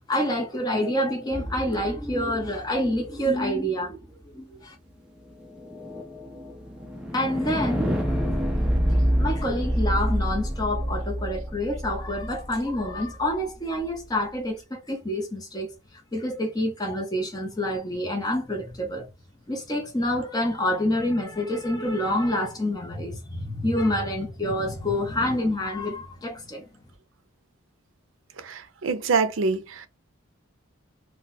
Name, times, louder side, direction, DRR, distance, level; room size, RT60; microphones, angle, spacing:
voice 1, 0.1-4.0 4.2-4.7 7.1-8.0 9.2-15.7 16.1-19.1 19.5-26.6, left 1 dB, 20° left, 0.7 m, -27 dB
sound 1, 1.3-3.5 5.3-13.4, equal, 5° right, 0.4 m, -28 dB
voice 2, 28.4-29.9, right 4 dB, 75° right, 0.5 m, -25 dB
2.3 x 2.2 x 3.9 m
head